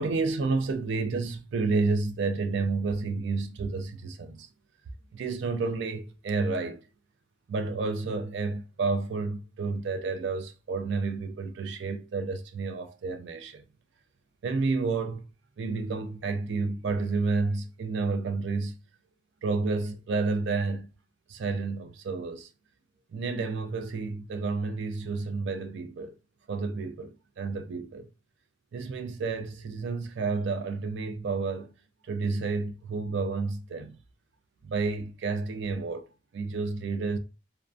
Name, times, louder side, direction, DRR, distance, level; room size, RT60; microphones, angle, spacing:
voice 1, 0.0-4.5 5.1-6.8 7.5-13.7 14.4-15.3 15.6-18.8 19.4-20.9 21.3-22.5 23.1-26.1 26.5-28.1 28.7-31.7 32.0-34.0 34.6-37.2, right 4 dB, 60° right, 0.3 m, -30 dB
2.4 x 2.1 x 2.5 m
head